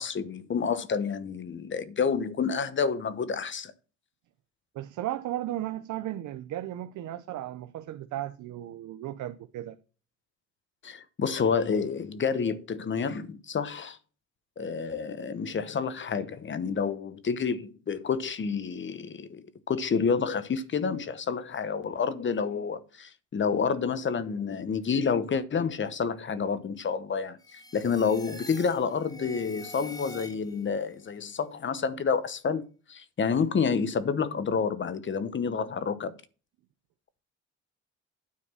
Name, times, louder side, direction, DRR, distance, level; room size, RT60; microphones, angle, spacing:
voice 1, 0.0-3.7 10.8-14.0 14.6-27.4 27.7-36.1, left 6 dB, 40° left, 1.0 m, -29 dB
voice 2, 4.7-9.8, right 13 dB, 80° right, 0.7 m, -35 dB
sound 1, 27.4-30.8, left 2 dB, 10° left, 1.5 m, -46 dB
9.6 x 4.2 x 7.3 m
cardioid pair, 90°, 30 cm